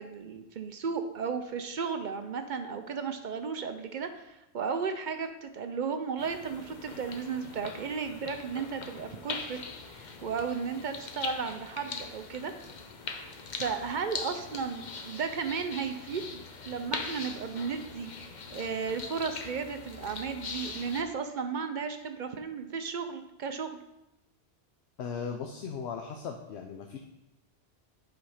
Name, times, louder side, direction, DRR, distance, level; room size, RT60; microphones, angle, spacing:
voice 1, 0.0-9.6 9.9-12.5 13.6-18.1 18.5-23.7, right 5 dB, 55° right, 7 dB, 0.6 m, -34 dB
sound 1, 6.2-21.0, left 4 dB, 50° left, 0.8 m, -41 dB
voice 2, 25.0-27.0, left 6 dB, 90° left, 3 dB, 0.9 m, -37 dB
8.3 x 4.0 x 4.9 m, 0.91 s
omnidirectional pair, 1.1 m